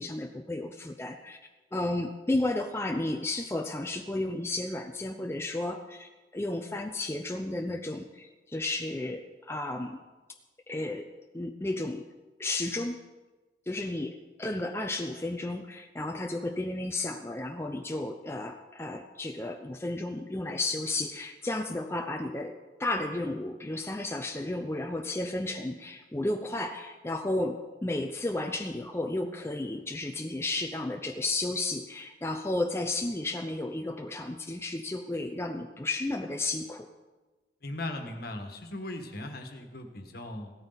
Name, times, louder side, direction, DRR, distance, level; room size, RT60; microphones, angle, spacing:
voice 1, 0.0-1.4 1.7-10.0 10.7-11.1 11.3-12.1 12.4-13.0 13.7-36.9, left 2 dB, 15° left, 3 dB, 0.6 m, -33 dB
voice 2, 37.6-40.5, left 1 dB, 60° left, 5 dB, 1.5 m, -38 dB
16.5 x 13.0 x 4.0 m, 1.2 s
head